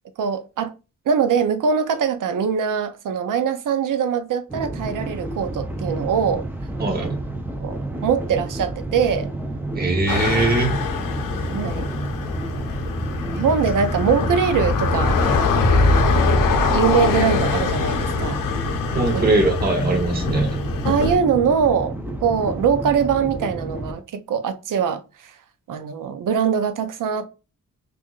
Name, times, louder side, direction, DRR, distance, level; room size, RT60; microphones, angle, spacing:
voice 1, 0.2-0.7 1.1-6.4 7.0-7.1 7.6-9.3 11.4-11.9 13.3-15.2 16.7-18.4 19.1-19.3 20.8-22.0 22.2-25.3 25.7-27.2, right 7 dB, 75° right, 0.5 m, -22 dB
sound 1, 4.5-23.9, right 1 dB, 5° right, 0.4 m, -30 dB
voice 2, 6.8-7.1 9.7-10.8 18.9-20.6, right 3 dB, 30° right, 0.9 m, -21 dB
sound 2, 10.1-21.1, left 4 dB, 85° left, 0.6 m, -22 dB
4.4 x 2.5 x 2.3 m
wide cardioid pair, 140°, 32 cm